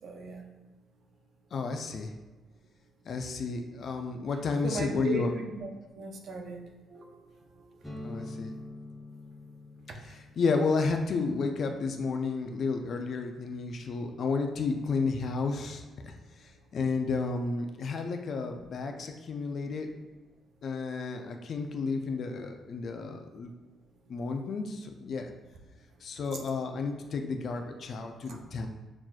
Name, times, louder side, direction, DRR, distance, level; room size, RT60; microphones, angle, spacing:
voice 1, 0.0-0.4 4.6-5.3 5.5-5.7 5.9-7.1 7.6-7.7 9.9-10.0 26.3-26.4 28.3-28.4, right 3 dB, 65° right, 2 dB, 0.6 m, -37 dB
voice 2, 1.5-2.1 3.1-5.3 8.0-8.5 10.0-16.1 16.7-19.9 20.6-23.5 24.1-25.3 26.0-28.7, left 4 dB, 55° left, 4 dB, 0.4 m, -32 dB
sound 1, 7.8-15.4, left 2 dB, 5° left, 0.7 m, -48 dB
5.9 x 2.4 x 2.3 m, 1.2 s
cardioid pair, 90°, 0 cm